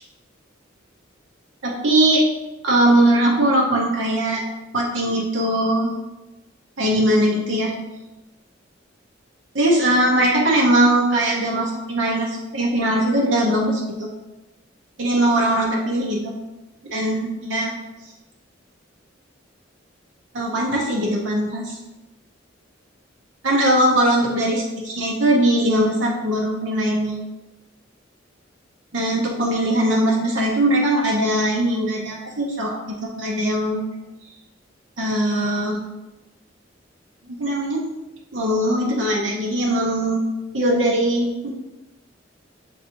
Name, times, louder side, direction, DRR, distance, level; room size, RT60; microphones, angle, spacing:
voice 1, 1.6-2.2 2.6-4.4 4.7-5.9 6.8-7.7 9.5-14.1 15.0-16.4 16.9-17.7 20.3-21.8 23.4-27.2 28.9-33.8 35.0-35.8 37.3-37.9 38.3-40.2 40.5-41.5, right 1 dB, 75° right, -2 dB, 0.8 m, -20 dB
7.1 x 2.6 x 2.8 m, 1.0 s
head